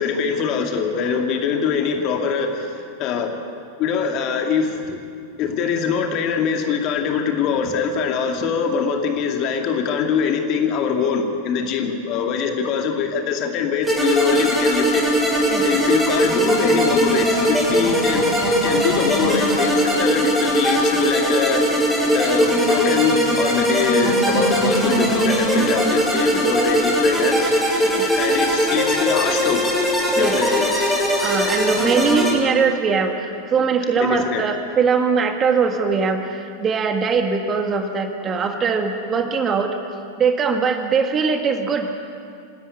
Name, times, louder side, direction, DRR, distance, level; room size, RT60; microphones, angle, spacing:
voice 1, 0.0-3.4 3.8-5.0 5.4-15.0 15.6-18.2 18.6-21.6 22.1-27.4 28.2-29.6 30.2-30.6 34.0-34.4, left 6 dB, 40° left, 4 dB, 2.4 m, -23 dB
sound 1, 13.8-32.3, equal, 5° right, 7.2 m, -20 dB
voice 2, 31.2-39.8 40.2-41.9, right 5 dB, 25° right, 6 dB, 1.8 m, -21 dB
27.0 x 13.0 x 9.8 m, 2.4 s
figure-of-eight pair, 90°, 0 cm